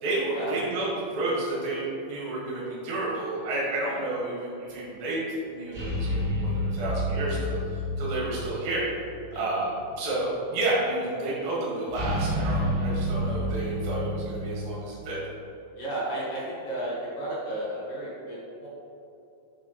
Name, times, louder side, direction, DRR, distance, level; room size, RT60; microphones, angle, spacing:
voice 1, 0.0-5.2 5.5-7.6 8.0-8.9 9.3-15.2, right 2 dB, 75° right, -6 dB, 3.1 m, -30 dB
sound 1, 5.7-9.0 9.3-9.4 11.9-14.8, equal, 50° right, 1.2 m, -29 dB
voice 2, 15.8-18.7, right 1 dB, 50° left, -7 dB, 2.1 m, -33 dB
7.6 x 5.0 x 3.0 m, 2.9 s
omnidirectional pair, 4.2 m